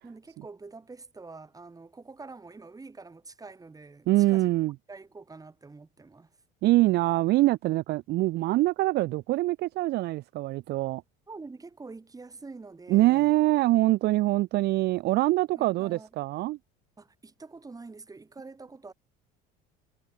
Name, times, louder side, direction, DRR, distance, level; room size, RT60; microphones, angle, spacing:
voice 1, 0.0-4.5 4.9-6.3 11.3-13.3 15.6-16.1 17.0-18.9, right 3 dB, 15° right, 4.2 m, -46 dB
voice 2, 4.1-4.7 6.6-11.0 12.9-16.6, right 18 dB, 55° right, 0.4 m, -24 dB
supercardioid pair, 110°, 21 cm